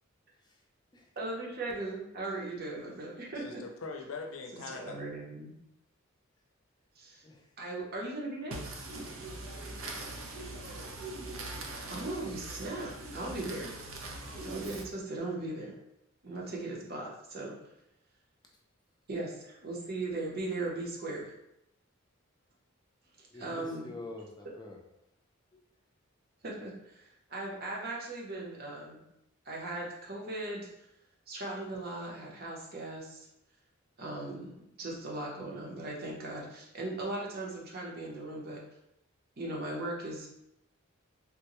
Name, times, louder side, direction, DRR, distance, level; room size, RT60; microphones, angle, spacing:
voice 1, 1.2-3.6 4.8-5.5 7.0-7.2 7.6-8.6 11.9-13.7 14.4-15.7 16.2-17.5 19.1-21.3 23.2-23.9 26.4-29.0 29.4-30.7 31.3-33.3 34.0-38.6 39.4-40.3, right 2 dB, 50° right, -3 dB, 0.8 m, -38 dB
voice 2, 3.4-5.0 9.5-9.9, left 4 dB, 85° left, 4 dB, 0.5 m, -43 dB
voice 3, 7.2-7.5 23.3-24.8 25.5-25.6, left 2 dB, 20° left, 1 dB, 0.4 m, -47 dB
voice 4, 8.5-14.9, right 2 dB, 80° right, -1 dB, 0.8 m, -41 dB
3.7 x 2.2 x 2.9 m, 0.82 s
head